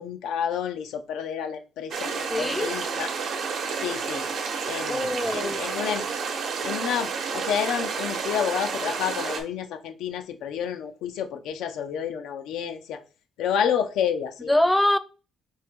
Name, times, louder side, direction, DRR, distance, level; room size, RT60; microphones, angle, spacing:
voice 1, 0.0-3.1 3.8-4.3 4.7-6.1 6.6-13.0 13.4-14.5, left 8 dB, 90° left, 0.4 m, -29 dB
sound 1, 1.9-9.4, right 5 dB, 65° right, 0.9 m, -30 dB
voice 2, 2.3-2.7 4.9-5.6 14.5-15.0, left 1 dB, 5° left, 0.3 m, -23 dB
4.4 x 2.8 x 3.5 m
cardioid pair, 125°, 0 cm